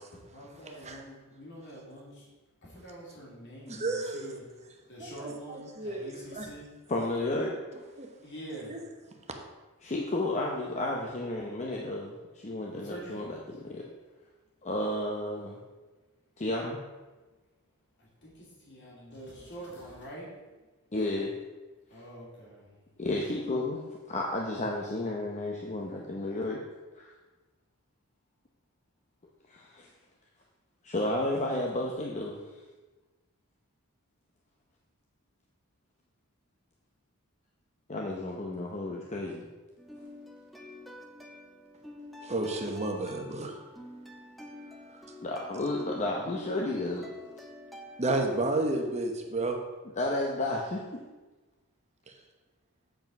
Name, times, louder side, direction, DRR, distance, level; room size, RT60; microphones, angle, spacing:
voice 1, 0.1-2.3 2.6-4.6 4.9-6.7 8.2-8.7 12.6-13.3 18.0-20.3 21.9-22.7, right 1 dB, 55° left, -5 dB, 2.7 m, -45 dB
voice 2, 3.7-4.3 5.0-5.1 5.8-6.0 6.3-6.5 8.0-8.1 8.7-8.8 42.2-43.5 48.0-49.6, right 2 dB, 30° right, 3 dB, 1.0 m, -30 dB
voice 3, 6.9-7.5 9.8-13.9 14.6-15.6 16.4-16.8 20.9-21.3 23.0-23.8 24.1-26.6 27.0-27.1 29.5-29.9 30.8-32.4 37.9-39.4 45.2-47.1 50.0-50.8, left 2 dB, 30° left, -1 dB, 0.7 m, -32 dB
sound 1, 39.8-48.4, left 1 dB, ahead, 0.7 m, -48 dB
7.8 x 4.9 x 5.3 m, 1.2 s
head